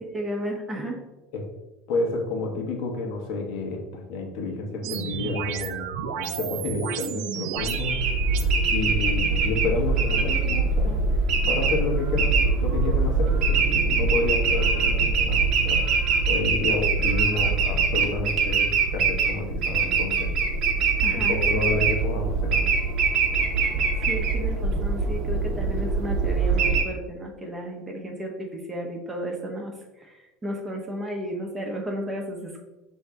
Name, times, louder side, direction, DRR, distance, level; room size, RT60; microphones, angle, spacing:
voice 1, 0.0-1.0 21.0-21.4 24.0-32.6, equal, 10° right, 1 dB, 0.8 m, -33 dB
voice 2, 1.9-5.9 6.2-8.0 8.7-11.1 11.5-15.8 16.3-20.3 21.1-22.7, left 3 dB, 65° left, 1 dB, 1.1 m, -30 dB
sound 1, 4.8-8.4, right 8 dB, 75° right, 0.4 m, -32 dB
sound 2, 7.5-26.8, right 4 dB, 45° right, 0.7 m, -23 dB
5.5 x 2.7 x 3.5 m, 1.0 s
cardioid pair, 155°, 0 cm